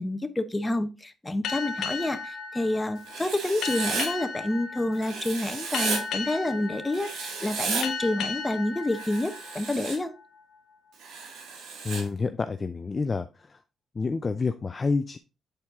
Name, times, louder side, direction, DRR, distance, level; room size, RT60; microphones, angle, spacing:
voice 1, 0.0-10.1, left 1 dB, 15° left, 9 dB, 0.9 m, -28 dB
sound 1, 1.4-10.6, left 5 dB, 75° left, 1.0 m, -36 dB
Writing, 3.1-4.1 5.0-6.0 6.9-7.8 8.9-10.0 11.0-12.0, right 4 dB, 80° right, 1.9 m, -33 dB
voice 2, 11.8-13.6 13.9-15.2, left 4 dB, 30° left, 9 dB, 0.4 m, -28 dB
8.0 x 4.3 x 3.6 m, 0.29 s
cardioid pair, 90°, 0 cm